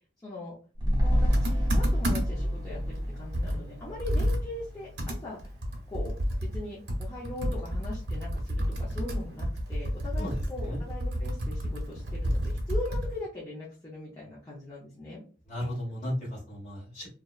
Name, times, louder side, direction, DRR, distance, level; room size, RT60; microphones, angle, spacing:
voice 1, 0.2-0.5 1.0-5.5 5.9-6.1 6.4-15.2, left 2 dB, 20° left, -7 dB, 0.5 m, -40 dB
sound 1, 0.8-5.3 5.6-5.7, equal, 25° right, 0.6 m, -28 dB
Computer keyboard, 1.3-2.5 2.9-3.0 3.3-13.2, equal, 85° right, 0.7 m, -30 dB
voice 2, 10.2-10.8 15.5-17.1, equal, 45° left, -4 dB, 1.2 m, -35 dB
2.7 x 2.1 x 2.3 m, 0.39 s
head